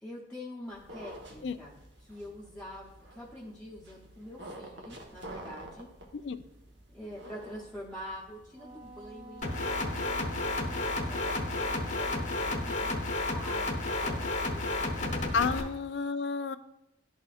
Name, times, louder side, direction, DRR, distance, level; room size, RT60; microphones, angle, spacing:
voice 1, 0.0-5.9 6.9-11.6 11.9-12.2 12.5-13.7 14.0-15.7, equal, 5° left, -6 dB, 0.7 m, -46 dB
sound 1, 0.6-15.9, right 1 dB, 70° right, 1.1 m, -50 dB
Wind instrument woodwind instrument, 8.5-13.0, right 3 dB, 25° right, 1.3 m, -50 dB
sound 2, 9.4-15.6, left 2 dB, 40° left, 0.9 m, -32 dB
voice 2, 15.3-16.6, left 5 dB, 70° left, 12 dB, 0.4 m, -31 dB
11.5 x 4.2 x 2.4 m, 0.89 s
head